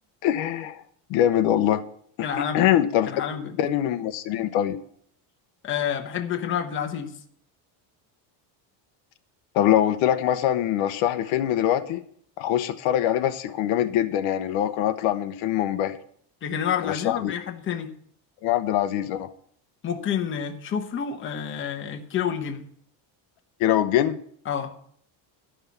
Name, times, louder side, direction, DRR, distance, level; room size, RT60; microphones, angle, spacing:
voice 1, 0.2-0.8 1.1-1.8 2.2-3.1 3.6-4.8 9.5-12.0 12.4-16.0 16.8-17.3 18.4-19.3 23.6-24.2, left 11 dB, 70° left, 1.0 m, -23 dB
voice 2, 2.2-2.6 3.1-3.6 5.6-7.2 16.4-17.9 19.8-22.6 24.5-24.7, left 8 dB, 25° left, 1.0 m, -29 dB
12.5 x 5.9 x 8.3 m
cardioid pair, 175°, 49 cm